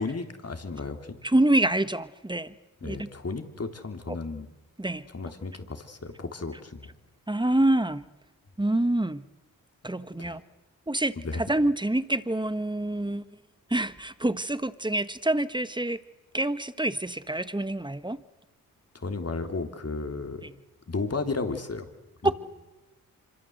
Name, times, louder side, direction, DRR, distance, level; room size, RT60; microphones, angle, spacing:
voice 1, 0.0-1.2 2.8-4.5 5.1-6.9 10.2-10.4 11.2-11.4 18.9-20.4 20.9-21.9 22.2-22.3, left 3 dB, 40° left, 6 dB, 3.3 m, -33 dB
voice 2, 1.2-2.5 2.8-3.1 4.1-4.2 4.8-5.0 7.3-8.0 8.6-9.2 9.8-10.4 10.9-13.2 13.7-16.0 16.3-18.2 20.4-20.5 22.2-22.3, right 1 dB, 15° right, 13 dB, 1.4 m, -26 dB
25.5 x 23.0 x 8.0 m, 1.1 s
cardioid pair, 50°, 36 cm